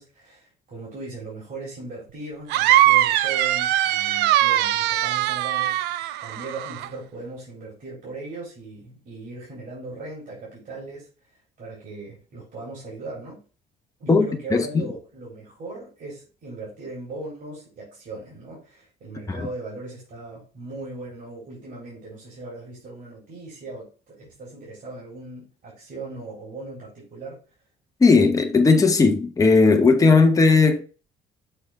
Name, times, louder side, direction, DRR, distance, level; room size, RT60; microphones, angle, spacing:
voice 1, 0.0-5.8 6.2-13.4 14.0-27.4, right 2 dB, 55° right, 3.7 m, -38 dB
sound 1, 2.5-6.9, right 14 dB, 85° right, 0.4 m, -21 dB
voice 2, 14.1-14.8 19.4-19.5 28.0-30.8, left 4 dB, 20° left, 0.9 m, -17 dB
6.6 x 4.3 x 3.5 m
cardioid pair, 110°, 17 cm